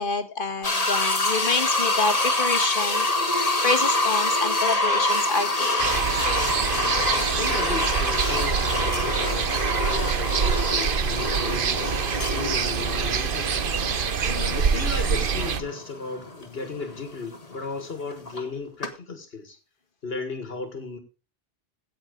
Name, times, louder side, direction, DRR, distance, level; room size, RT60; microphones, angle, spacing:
voice 1, 0.0-3.3 3.6-5.8 14.2-14.6, left 4 dB, 55° left, 7 dB, 1.5 m, -28 dB
sound 1, 0.6-18.5 18.8-18.9, left 2 dB, 40° left, 1.7 m, -26 dB
sound 2, 5.8-15.6, right 6 dB, 60° right, 1.0 m, -25 dB
voice 2, 7.3-19.6 20.0-21.0, left 3 dB, 75° left, 7 dB, 1.9 m, -35 dB
16.0 x 6.3 x 5.2 m, 0.34 s
omnidirectional pair, 1.0 m